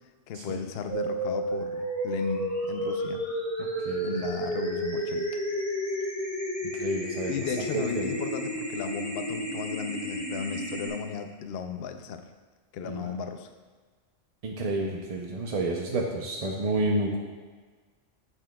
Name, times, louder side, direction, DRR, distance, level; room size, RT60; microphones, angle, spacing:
voice 1, 0.3-3.2 4.0-5.3 7.3-12.3 12.7-13.5, left 6 dB, 65° left, 7 dB, 0.7 m, -35 dB
sound 1, 0.9-10.9, equal, 15° left, 1.2 m, -31 dB
voice 2, 3.6-4.1 6.7-8.1 12.8-13.1 14.4-17.2, right 2 dB, 45° right, -1 dB, 0.5 m, -30 dB
9.8 x 6.3 x 2.3 m, 1.4 s
omnidirectional pair, 1.3 m